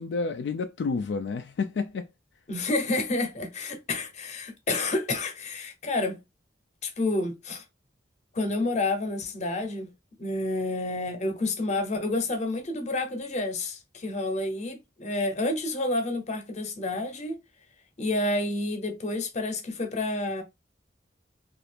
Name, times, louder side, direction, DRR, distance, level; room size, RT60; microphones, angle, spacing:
voice 1, 0.0-2.1, left 4 dB, 75° left, 0.3 m, -30 dB
voice 2, 2.5-6.2 6.8-7.6 8.3-9.9 10.2-17.4 18.0-20.4, left 2 dB, 40° left, 0.8 m, -29 dB
2.8 x 2.5 x 3.3 m
head